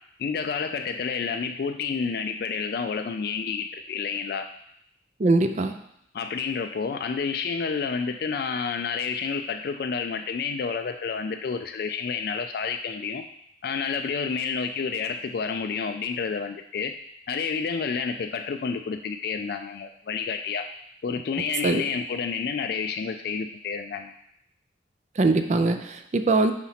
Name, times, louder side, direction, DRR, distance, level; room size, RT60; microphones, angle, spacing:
voice 1, 0.2-4.5 6.1-13.2 13.6-16.9 17.3-20.7 21.0-24.1, left 5 dB, 55° left, 6 dB, 0.3 m, -29 dB
voice 2, 5.2-5.7 21.6-21.8 25.2-26.5, right 3 dB, 40° right, 8 dB, 0.4 m, -22 dB
5.0 x 4.2 x 5.7 m, 0.73 s
head